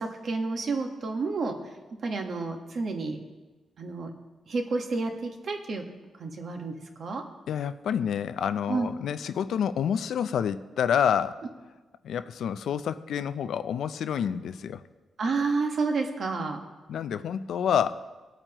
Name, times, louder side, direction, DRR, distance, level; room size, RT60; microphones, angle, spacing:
voice 1, 0.0-1.6 2.0-3.2 3.8-4.1 4.5-5.8 6.2-7.2 8.7-8.9 15.2-16.6, right 3 dB, 50° right, 3 dB, 1.4 m, -30 dB
voice 2, 7.5-11.4 12.0-14.8 16.9-18.0, left 8 dB, 75° left, 12 dB, 0.5 m, -28 dB
21.0 x 9.0 x 3.0 m, 1.2 s
wide cardioid pair, 155°, 0 cm